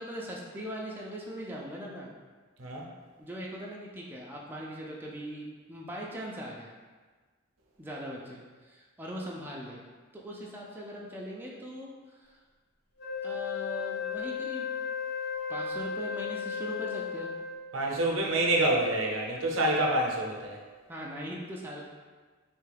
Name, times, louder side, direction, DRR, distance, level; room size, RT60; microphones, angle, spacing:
voice 1, 0.0-2.1 3.2-6.7 7.8-11.9 12.2-12.3 13.2-14.7 15.5-17.3 20.9-21.9, equal, 10° right, -4 dB, 0.3 m, -40 dB
Wind instrument woodwind instrument, 13.0-17.7, left 7 dB, 55° left, 0.7 m, -35 dB
voice 2, 17.7-20.6, right 1 dB, 85° right, -1 dB, 0.6 m, -27 dB
3.2 x 2.3 x 3.3 m, 1.4 s
head